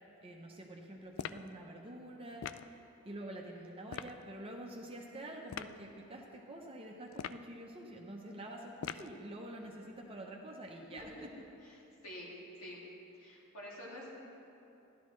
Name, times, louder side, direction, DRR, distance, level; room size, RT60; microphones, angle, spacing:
voice 1, 0.2-11.3, right 1 dB, 25° right, 0 dB, 0.7 m, -47 dB
sound 1, 1.2-1.5 2.4-2.7 3.9-4.2 5.5-5.8 7.1-7.5 8.8-9.2, left 8 dB, 65° left, 0.3 m, -42 dB
voice 2, 10.9-11.3 11.6-12.3 12.6-12.8 13.1-14.1, left 1 dB, 85° left, -5 dB, 2.6 m, -48 dB
13.5 x 11.5 x 3.2 m, 2.8 s
head